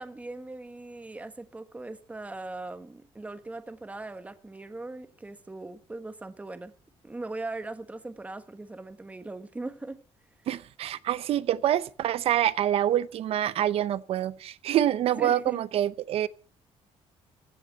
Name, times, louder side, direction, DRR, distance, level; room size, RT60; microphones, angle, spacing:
voice 1, 0.0-6.7 7.0-10.0 15.2-15.6, right 2 dB, 15° right, 1.3 m, -39 dB
voice 2, 10.5-16.3, right 11 dB, 65° right, 0.7 m, -26 dB
15.0 x 7.3 x 8.0 m
cardioid pair, 125°, 11 cm